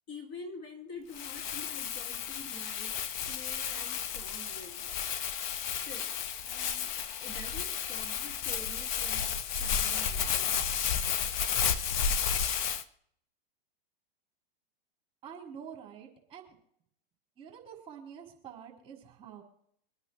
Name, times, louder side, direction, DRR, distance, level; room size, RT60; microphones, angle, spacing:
voice 1, 0.1-3.0 3.3-4.9 5.7-6.2 6.5-6.9 7.2-10.7, left 3 dB, 35° left, 3 dB, 2.5 m, -47 dB
Crumpling crinkling, 1.1-12.8, left 8 dB, 55° left, 1.3 m, -32 dB
voice 2, 15.2-16.6 17.4-19.4, right 8 dB, 20° right, 0 dB, 4.9 m, -47 dB
25.0 x 9.8 x 3.3 m, 0.67 s
hypercardioid pair, 120°, 30 cm